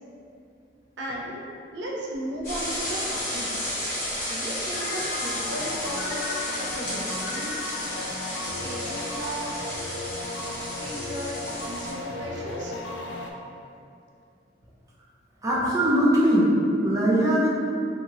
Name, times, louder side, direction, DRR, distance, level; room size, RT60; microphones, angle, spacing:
voice 1, 1.0-1.4 1.7-3.7 4.2-7.5 8.6-9.5 10.8-12.7, equal, 75° right, -3 dB, 0.5 m, -35 dB
sound 1, 2.4-11.9, left 1 dB, 45° left, 1.3 m, -32 dB
sound 2, 4.7-13.3, left 2 dB, 90° left, 0.3 m, -35 dB
voice 2, 15.4-16.5 16.8-17.5, right 1 dB, 20° right, -7 dB, 0.4 m, -20 dB
2.7 x 2.4 x 2.9 m, 2.6 s
head